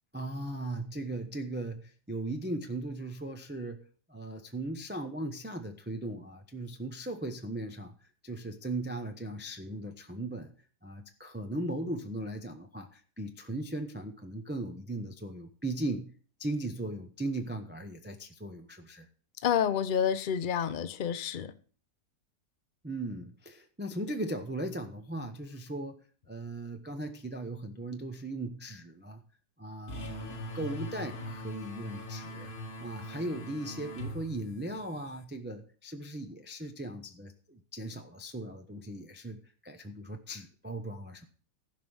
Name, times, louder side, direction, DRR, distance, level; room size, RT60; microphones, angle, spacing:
voice 1, 0.1-3.8 4.1-7.9 8.2-10.5 10.8-16.1 16.4-19.1 22.8-29.2 29.6-41.3, right 1 dB, 10° right, 0.4 m, -38 dB
voice 2, 19.4-21.5, left 8 dB, 70° left, 0.4 m, -29 dB
sound 1, 29.9-35.2, left 1 dB, 35° left, 1.1 m, -42 dB
15.0 x 5.4 x 6.2 m
omnidirectional pair, 1.9 m